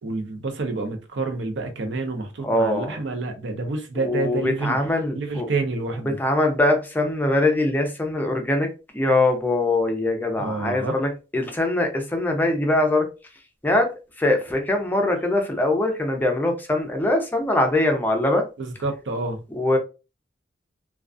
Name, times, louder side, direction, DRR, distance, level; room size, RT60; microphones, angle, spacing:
voice 1, 0.0-4.8 5.1-6.2 10.4-10.9 18.6-19.4, right 3 dB, 90° right, 0.6 m, -28 dB
voice 2, 2.4-3.0 4.0-5.5 6.2-8.7 8.9-13.0 13.6-13.9 14.2-18.4 19.5-19.8, left 2 dB, 10° left, 0.4 m, -22 dB
2.3 x 2.3 x 2.4 m
head